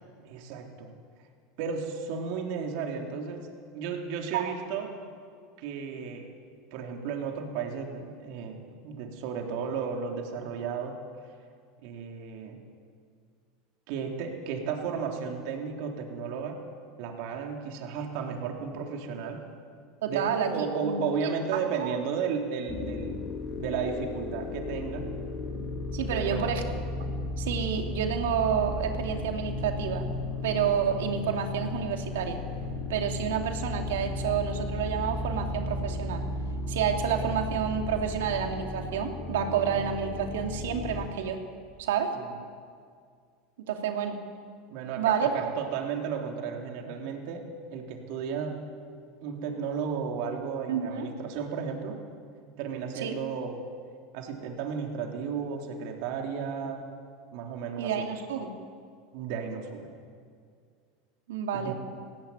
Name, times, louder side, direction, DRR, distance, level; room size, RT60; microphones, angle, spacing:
voice 1, 0.2-0.9 1.6-5.0 5.6-6.3 6.7-11.0 11.8-12.6 13.9-16.6 17.0-19.4 20.1-23.2 23.6-25.1 26.1-26.6 42.1-42.3 44.7-48.7 49.2-52.0 52.6-53.7 54.1-56.8 57.3-58.1 59.1-59.9 61.5-61.7, right 6 dB, 65° right, 2 dB, 3.6 m, -34 dB
voice 2, 20.0-21.0 21.8-21.9 25.9-26.6 27.4-30.0 30.4-32.4 32.9-36.3 36.7-41.4 41.8-42.1 43.7-44.2 45.0-45.3 50.7-51.1 53.0-53.1 57.8-58.5 61.3-61.7, right 8 dB, 80° right, 4 dB, 2.6 m, -29 dB
sound 1, 22.7-41.1, left 2 dB, 45° left, 2.9 m, -34 dB
18.0 x 17.5 x 9.4 m, 2.1 s
hypercardioid pair, 105°, 0 cm